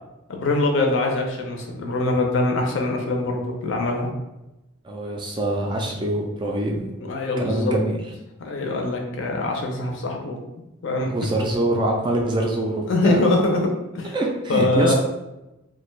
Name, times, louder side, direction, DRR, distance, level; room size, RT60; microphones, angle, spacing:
voice 1, 0.3-4.1 7.1-7.7 8.4-10.4 10.8-11.1 12.9-13.6 13.9-14.2 14.5-14.9, left 2 dB, 60° left, 2 dB, 0.5 m, -23 dB
voice 2, 4.8-6.9 7.4-8.0 11.1-13.2 14.1-14.9, right 1 dB, 20° right, 0 dB, 0.3 m, -24 dB
2.5 x 2.2 x 3.1 m, 0.97 s
head